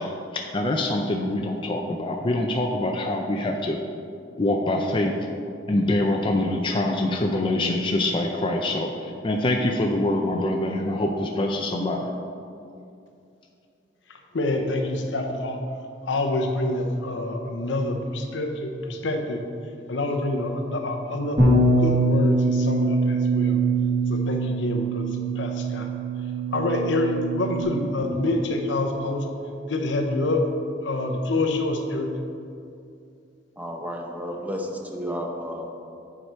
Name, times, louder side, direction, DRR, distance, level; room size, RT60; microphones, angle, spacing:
voice 1, 0.0-3.8 4.4-5.1 5.7-12.1, left 1 dB, 30° left, 1 dB, 0.4 m, -25 dB
voice 2, 14.1-15.6 16.0-19.4 19.9-23.6 24.1-25.1 25.3-25.9 26.5-29.3 29.7-30.5 30.8-32.1, left 2 dB, 90° left, 3 dB, 0.8 m, -27 dB
Bass guitar, 21.4-27.6, right 2 dB, 30° right, 1.6 m, -23 dB
voice 3, 33.6-35.7, equal, 10° right, 1 dB, 0.7 m, -32 dB
9.0 x 4.8 x 4.5 m, 2.5 s
head